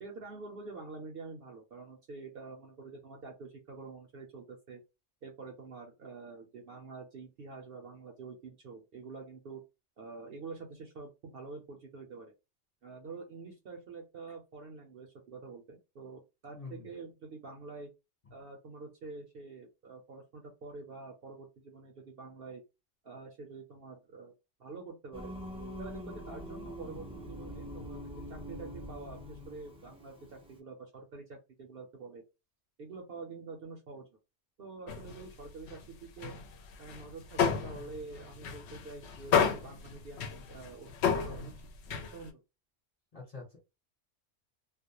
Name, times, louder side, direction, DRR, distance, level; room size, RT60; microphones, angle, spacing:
voice 1, 0.0-4.8 5.2-9.6 10.0-12.3 12.8-17.9 18.3-22.6 23.0-24.3 24.6-25.3 25.8-32.2 32.8-34.1 34.6-36.3 36.8-41.5 42.1-42.4, right 4 dB, 55° right, 1 dB, 0.8 m, -47 dB
voice 2, 16.5-16.9 43.1-43.6, left 4 dB, 30° left, -2 dB, 1.0 m, -45 dB
Singing, 25.1-30.6, equal, 10° right, 0.3 m, -44 dB
sound 1, 34.9-35.8 36.2-42.3, left 6 dB, 65° left, 0.8 m, -32 dB
2.3 x 2.1 x 2.9 m, 0.26 s
omnidirectional pair, 1.3 m